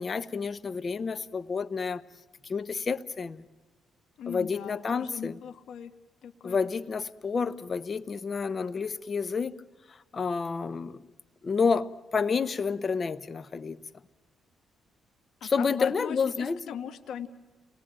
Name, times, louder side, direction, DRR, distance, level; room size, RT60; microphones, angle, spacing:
voice 1, 0.0-2.0 2.4-3.4 4.3-5.4 6.4-9.6 9.9-11.0 11.4-13.8 15.4-16.8, left 5 dB, 40° left, 0.9 m, -29 dB
voice 2, 4.2-5.9 6.2-6.6 15.4-17.3, left 8 dB, 70° left, 1.4 m, -39 dB
29.5 x 20.0 x 8.9 m
cardioid pair, 90°, 0 cm